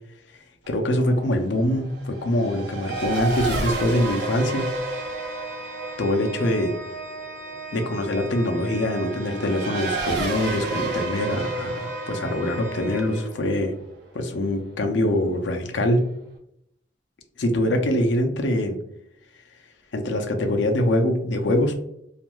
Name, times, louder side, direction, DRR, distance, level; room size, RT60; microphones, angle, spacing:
Race car auto racing / Accelerating revving vroom, 0.6-14.7, right 3 dB, 60° right, 0.7 m, -32 dB
voice 1, 0.7-4.6 6.0-6.7 7.7-13.7 14.1-16.0 17.4-18.7 19.9-21.8, left 1 dB, 75° left, 4 dB, 0.5 m, -24 dB
Organ, 2.8-13.7, right 3 dB, 80° right, 1.4 m, -38 dB
3.0 x 2.4 x 2.2 m, 0.75 s
head